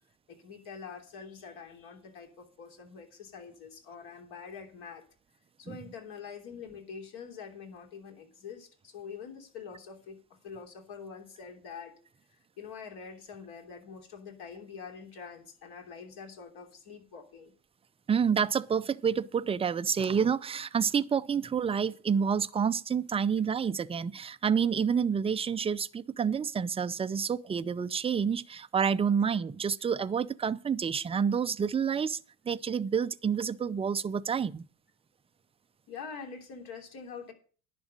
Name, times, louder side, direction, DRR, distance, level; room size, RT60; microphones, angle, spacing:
voice 1, 0.3-5.0 5.6-10.2 10.4-11.9 12.6-17.5 35.9-37.3, left 6 dB, 55° left, 3.3 m, -45 dB
voice 2, 18.1-32.2 32.5-34.7, right 7 dB, 15° right, 0.5 m, -28 dB
10.5 x 6.1 x 8.9 m
hypercardioid pair, 70°, 43 cm